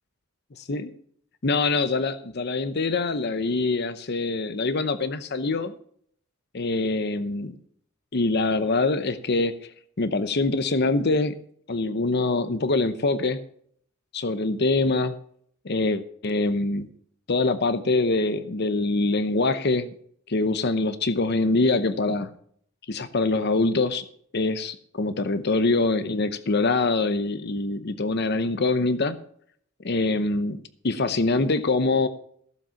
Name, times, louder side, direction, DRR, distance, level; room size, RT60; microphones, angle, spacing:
voice 1, 1.4-5.7 6.5-7.6 8.1-9.5 10.0-11.4 11.7-13.4 14.1-15.1 15.6-16.9 17.3-19.9 20.3-22.3 22.9-24.1 24.3-29.2 29.8-32.1, left 3 dB, 55° left, 11 dB, 0.8 m, -24 dB
15.0 x 7.6 x 5.8 m, 0.62 s
head